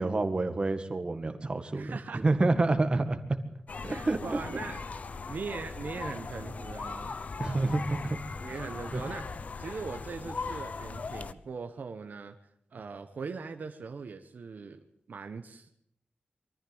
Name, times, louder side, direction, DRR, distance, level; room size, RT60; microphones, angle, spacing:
voice 1, 0.0-3.2 3.8-4.2 7.4-8.2 8.9-9.0, right 2 dB, 30° right, 8 dB, 1.8 m, -28 dB
voice 2, 1.7-2.2 3.9-5.0 5.3-7.2 8.4-12.3 12.7-15.7, right 5 dB, 60° right, 6 dB, 1.2 m, -40 dB
sound 1, 3.7-11.3, left 4 dB, 45° left, 0.8 m, -39 dB
23.5 x 14.0 x 7.9 m, 0.71 s
wide cardioid pair, 165°, 3 cm